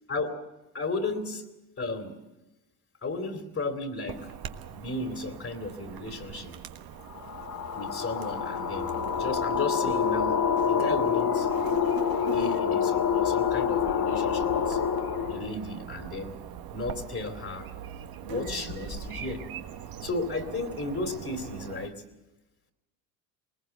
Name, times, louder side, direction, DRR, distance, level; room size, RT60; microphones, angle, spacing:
voice 1, 0.7-1.5 1.8-2.2 3.0-4.3 4.7-6.5 7.7-10.4 10.7-11.5 12.2-14.8 15.3-16.4 16.7-17.7 18.2-19.4 20.0-21.9, left 3 dB, 30° left, 6 dB, 2.9 m, -34 dB
Chirp tweet / Buzz, 4.1-21.9, right 9 dB, 55° right, 1.5 m, -42 dB
sound 1, 7.1-15.5, left 7 dB, 50° left, 3.2 m, -27 dB
20.5 x 20.0 x 7.8 m, 1.0 s
hypercardioid pair, 80°, 44 cm